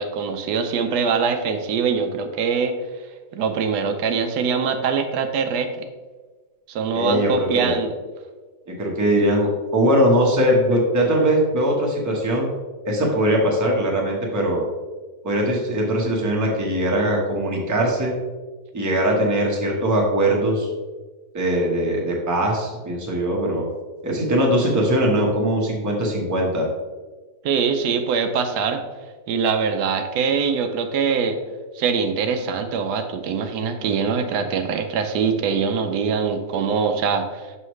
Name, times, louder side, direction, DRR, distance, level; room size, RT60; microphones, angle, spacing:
voice 1, 0.0-2.8 3.3-5.8 6.7-7.9 27.4-28.8 29.3-31.4 31.8-37.5, right 5 dB, 80° right, 7 dB, 1.2 m, -23 dB
voice 2, 6.9-7.7 8.7-12.5 12.8-14.6 15.2-18.1 18.7-20.7 21.3-23.7 24.0-26.7, right 1 dB, 15° right, -2 dB, 0.9 m, -21 dB
6.2 x 5.5 x 3.1 m, 1.3 s
omnidirectional pair, 1.7 m